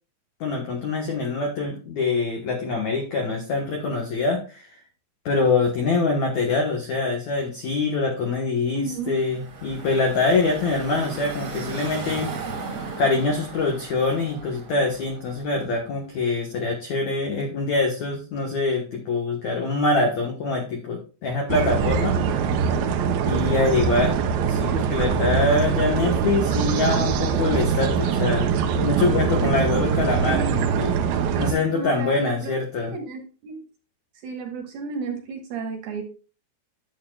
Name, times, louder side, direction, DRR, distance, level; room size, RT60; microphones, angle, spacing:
voice 1, 0.4-4.7 5.2-12.3 13.0-22.2 23.2-24.2 24.5-28.5 28.8-31.0 31.4-32.9, left 3 dB, 75° left, 1 dB, 1.6 m, -24 dB
voice 2, 8.7-9.2 30.2-30.7 31.3-33.6 34.2-36.0, right 4 dB, 65° right, 3 dB, 2.6 m, -33 dB
Car passing by / Traffic noise roadway noise, 8.8-15.8, right 4 dB, 45° right, 1.7 m, -36 dB
sound 1, 21.5-31.5, right 7 dB, 80° right, 2.0 m, -23 dB
11.0 x 8.6 x 2.4 m, 0.36 s
omnidirectional pair, 5.5 m